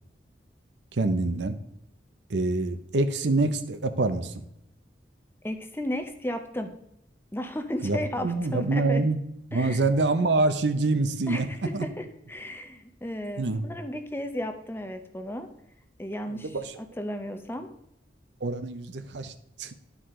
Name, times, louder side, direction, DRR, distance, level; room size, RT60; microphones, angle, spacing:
voice 1, 0.9-1.6 2.3-4.4 7.8-9.2 9.5-11.5 11.7-11.8 13.4-13.7 16.3-16.7 18.4-19.3 19.6-19.7, right 2 dB, 70° right, 9 dB, 0.7 m, -26 dB
voice 2, 5.4-6.7 7.3-9.0 9.5-9.8 11.3-15.5 16.0-17.7, left 1 dB, 10° left, 7 dB, 0.6 m, -34 dB
11.5 x 4.8 x 3.7 m, 0.79 s
head